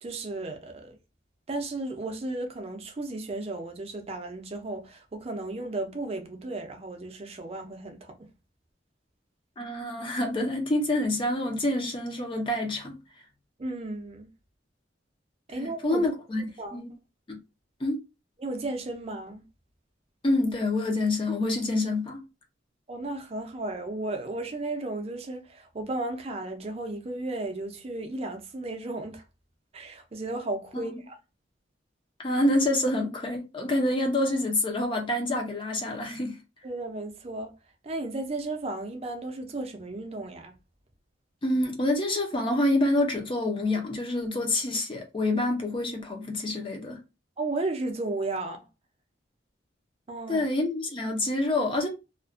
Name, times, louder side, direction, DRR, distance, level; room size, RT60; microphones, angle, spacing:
voice 1, 0.0-1.0 1.5-8.3 13.6-14.3 15.5-16.0 16.6-16.9 18.4-19.4 22.9-29.2 29.7-31.2 36.6-37.5 37.8-40.5 47.4-48.7 50.1-50.5, right 2 dB, 35° right, 0.5 m, -34 dB
voice 2, 9.6-13.0 15.5-16.4 16.7-16.9 17.3-17.4 17.8-18.0 20.2-22.2 30.7-31.0 32.2-36.4 41.4-47.0 50.3-51.9, left 1 dB, 30° left, 0.5 m, -27 dB
2.4 x 2.1 x 2.4 m
head